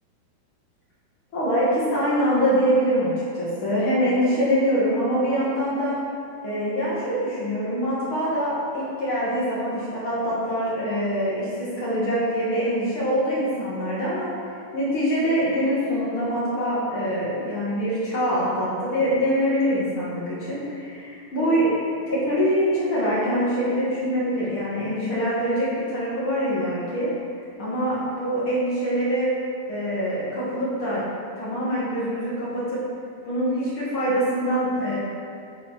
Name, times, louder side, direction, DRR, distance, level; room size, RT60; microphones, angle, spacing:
voice 1, 1.3-6.0 6.4-14.3 14.7-27.1 27.6-29.3 29.7-31.0 31.4-32.8 33.2-35.0, equal, 50° left, -8 dB, 1.6 m, -24 dB
9.8 x 6.2 x 4.5 m, 2.4 s
omnidirectional pair, 4.9 m